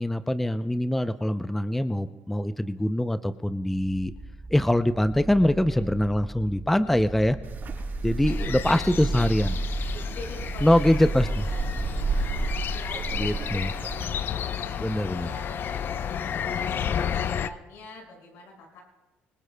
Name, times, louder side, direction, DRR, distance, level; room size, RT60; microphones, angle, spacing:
voice 1, 0.0-4.1 4.5-7.4 8.0-9.5 10.6-11.3 13.2-13.7 14.8-15.3, left 1 dB, 5° left, 11 dB, 0.5 m, -23 dB
sound 1, 3.6-12.0, right 2 dB, 25° right, 2.9 m, -34 dB
voice 2, 5.4-5.9 7.7-7.9 8.4-12.1 12.5-14.3 14.5-16.1 16.5-18.8, left 2 dB, 80° left, 0 dB, 5.5 m, -47 dB
Wind, 7.4-14.0, right 4 dB, 50° right, 6.5 m, -33 dB
sound 2, 8.3-17.5, left 8 dB, 55° left, 0.6 m, -32 dB
26.0 x 20.5 x 2.2 m, 1.1 s
cardioid pair, 90°, 4 cm